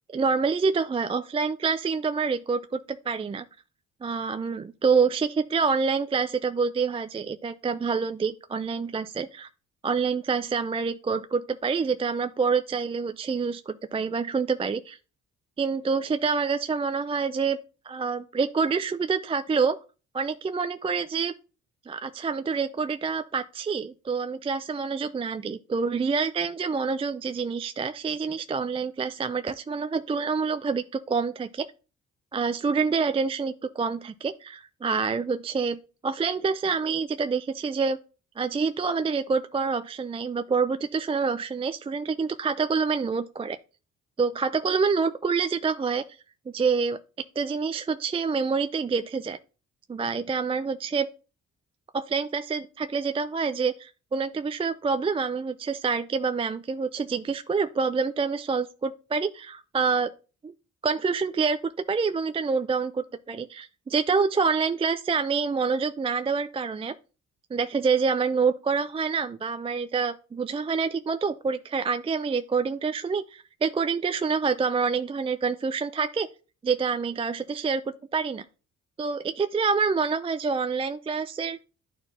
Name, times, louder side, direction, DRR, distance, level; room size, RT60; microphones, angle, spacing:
voice 1, 0.1-3.4 4.0-9.5 9.8-15.0 15.6-17.6 17.9-19.8 20.1-21.3 21.9-31.7 32.3-38.0 38.4-43.6 44.2-46.0 46.5-47.0 47.4-49.4 49.9-51.1 51.9-60.1 60.4-60.5 60.8-61.6 61.9-66.9 67.5-76.3 76.6-77.8 78.1-78.4 79.0-81.6, right 5 dB, 20° right, 0.4 m, -27 dB
11.0 x 4.5 x 2.7 m
cardioid pair, 90°, 30 cm